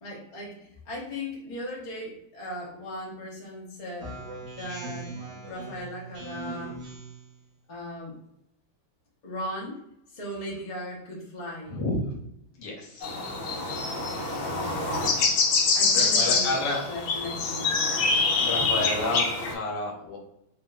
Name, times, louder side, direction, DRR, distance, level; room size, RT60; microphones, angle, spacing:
voice 1, 0.0-4.1 4.5-5.1 5.4-6.8 7.7-8.2 9.2-9.8 10.1-11.7 13.5-14.0 14.5-15.2 15.7-16.6 16.9-18.0, left 1 dB, 45° left, -4 dB, 0.5 m, -38 dB
Speech synthesizer, 4.0-7.3, right 4 dB, 80° right, 0.6 m, -40 dB
voice 2, 12.6-13.1 15.9-16.9 18.4-20.2, left 2 dB, 65° left, -1 dB, 1.3 m, -30 dB
sound 1, 13.0-19.5, left 4 dB, 90° left, 1.4 m, -25 dB
2.9 x 2.9 x 2.2 m, 0.77 s
omnidirectional pair, 2.2 m